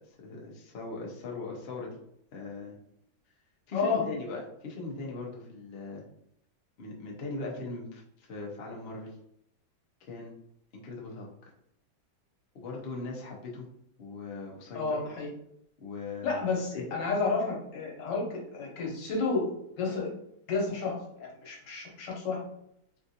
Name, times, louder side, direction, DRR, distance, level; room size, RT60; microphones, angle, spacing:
voice 1, 0.1-2.0 2.3-2.8 3.7-6.0 6.8-9.1 10.1-10.3 10.7-11.5 12.5-13.7 14.0-15.0 15.8-16.4 16.7-17.0, left 3 dB, 90° left, -2 dB, 0.5 m, -39 dB
voice 2, 3.7-4.1 14.7-15.3 16.2-19.5 19.8-20.1 20.5-22.4, left 4 dB, 70° left, -1 dB, 1.5 m, -31 dB
3.5 x 2.5 x 2.7 m, 0.74 s
omnidirectional pair, 2.1 m